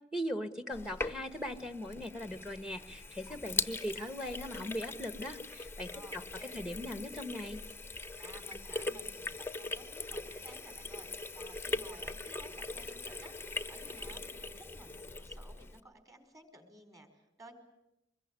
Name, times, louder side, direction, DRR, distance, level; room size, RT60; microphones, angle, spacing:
voice 1, 0.1-7.6, equal, 5° right, 10 dB, 1.3 m, -39 dB
Sink (filling or washing), 0.7-15.8, left 3 dB, 15° left, 0.9 m, -41 dB
voice 2, 5.9-6.6 8.2-13.3 13.7-17.5, right 2 dB, 20° right, 6 dB, 4.7 m, -56 dB
24.5 x 21.5 x 9.7 m, 0.91 s
head